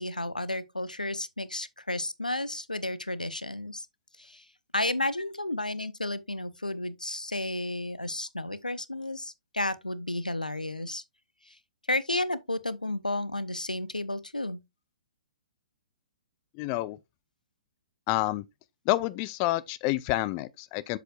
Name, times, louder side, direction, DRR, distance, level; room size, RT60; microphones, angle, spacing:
voice 1, 0.0-3.9 4.2-4.5 4.7-11.0 11.4-11.6 11.9-14.6, left 1 dB, 85° left, 0.8 m, -32 dB
voice 2, 16.6-17.0 18.1-18.4 18.9-21.0, left 17 dB, 25° left, 0.4 m, -28 dB
7.7 x 7.1 x 2.4 m
figure-of-eight pair, 120°, 4 cm